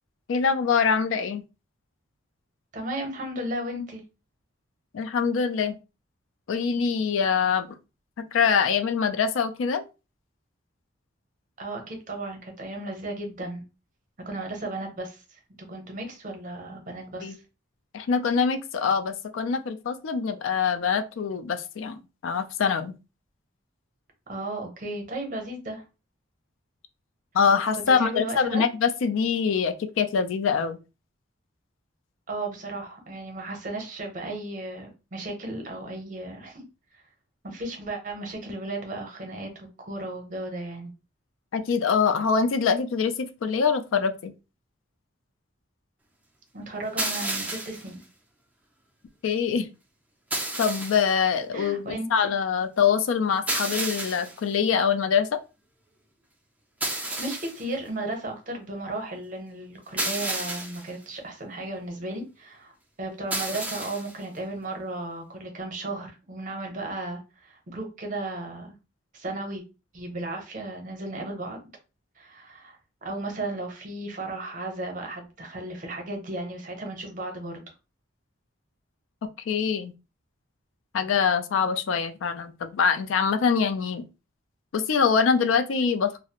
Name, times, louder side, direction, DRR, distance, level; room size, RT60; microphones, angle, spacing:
voice 1, 0.3-1.4 4.9-5.8 6.5-7.7 8.2-9.8 17.2-17.3 17.9-22.9 27.3-30.8 41.5-44.3 49.2-49.7 50.6-55.3 79.5-79.9 80.9-84.0 84.7-86.2, left 6 dB, 75° left, 0.3 m, -24 dB
voice 2, 2.7-4.0 11.6-13.6 14.3-15.4 15.7-17.4 24.3-25.8 27.9-28.6 32.3-36.6 36.9-37.0 37.4-40.9 46.5-48.0 51.5-52.1 56.9-68.7 69.1-69.6 69.9-71.6 72.2-77.6, right 2 dB, 40° right, 0.7 m, -35 dB
sound 1, 47.0-47.9 50.3-51.1 53.5-54.4 56.8-57.6 60.0-60.9 63.3-64.1, right 2 dB, 5° right, 0.4 m, -31 dB
2.4 x 2.0 x 2.8 m
head